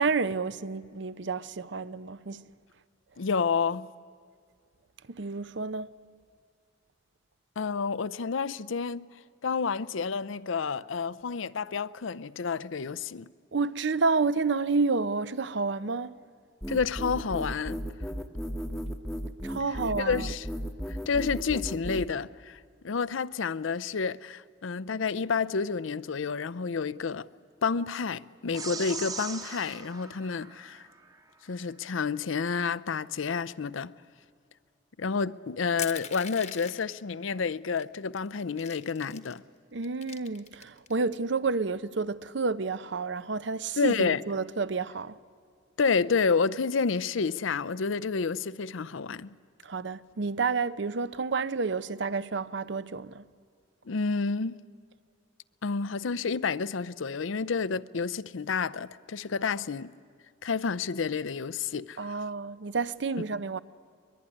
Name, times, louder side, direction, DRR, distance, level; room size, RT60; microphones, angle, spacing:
voice 1, 0.0-2.5 5.1-5.9 13.5-16.1 19.4-20.3 39.7-45.2 49.6-53.2 62.0-63.6, right 4 dB, 65° right, 0.6 m, -30 dB
voice 2, 3.2-3.9 7.6-9.0 9.4-13.3 16.7-17.8 20.0-20.5 21.1-22.6 22.8-27.3 27.6-30.8 31.5-33.9 35.0-39.4 43.8-44.2 45.8-49.3 53.9-54.6 55.6-59.9 60.4-62.2, left 5 dB, 85° left, 0.6 m, -29 dB
sound 1, 16.6-22.1, equal, ahead, 0.9 m, -35 dB
sound 2, 28.5-31.2, right 4 dB, 20° right, 1.1 m, -40 dB
Crushing, 35.8-37.0 37.8-37.9 38.2-39.4 39.8-40.9, left 9 dB, 35° left, 1.1 m, -41 dB
23.0 x 22.0 x 9.9 m
head